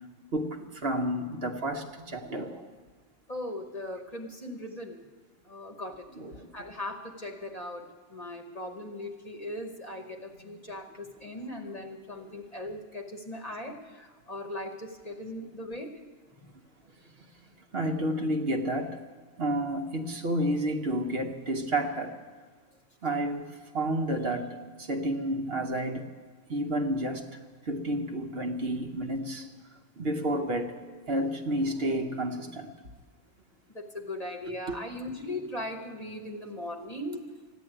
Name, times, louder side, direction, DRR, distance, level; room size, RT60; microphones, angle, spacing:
voice 1, 0.3-2.7 6.2-6.5 17.7-19.0 19.4-22.1 23.0-26.0 26.5-27.3 27.7-29.5 30.0-32.7 34.7-34.8, right 1 dB, 50° right, 4 dB, 1.1 m, -30 dB
voice 2, 3.3-5.0 5.4-6.1 6.5-16.0 16.4-16.5 33.7-37.2, left 1 dB, 30° left, 4 dB, 1.1 m, -39 dB
14.0 x 10.0 x 8.9 m, 1.4 s
omnidirectional pair, 1.4 m